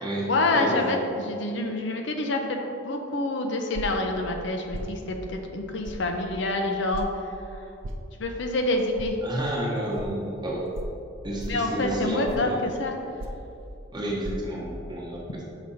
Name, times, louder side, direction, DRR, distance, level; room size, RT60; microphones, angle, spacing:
voice 1, 0.0-7.1 7.5-7.6 8.2-9.2 11.5-13.0, left 2 dB, 60° left, 3 dB, 0.6 m, -27 dB
voice 2, 0.5-1.0 9.2-10.7 11.2-12.5 13.9-15.4, equal, 20° right, -4 dB, 1.0 m, -30 dB
sound 1, 3.7-4.1 4.7-4.9 5.8-6.0 6.9-7.1 7.8-8.0 9.0-9.1 9.9-10.1 10.7-11.0 11.4-11.7 12.2-12.5 13.2-13.5 14.2-14.3, right 1 dB, 75° right, 0.6 m, -35 dB
6.0 x 5.0 x 4.2 m, 2.7 s
head